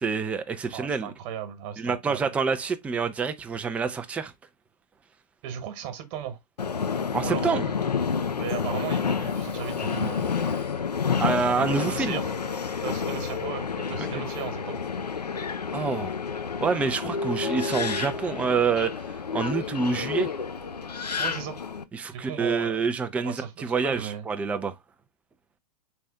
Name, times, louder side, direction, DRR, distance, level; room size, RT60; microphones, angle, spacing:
voice 1, 0.0-1.1 1.8-4.3 7.1-7.6 11.2-12.2 15.7-16.1 16.6-18.9 19.3-20.3 21.9-24.7, right 5 dB, 5° right, 0.4 m, -27 dB
voice 2, 0.7-2.3 5.4-6.4 7.2-7.7 8.4-10.3 11.6-12.4 12.8-14.8 21.2-21.6 22.1-22.9 23.2-24.3, right 9 dB, 40° right, 1.3 m, -36 dB
Subway metro underground, 6.6-21.8, left 6 dB, 80° left, 0.6 m, -29 dB
4.2 x 3.4 x 3.5 m
figure-of-eight pair, 105°, 20 cm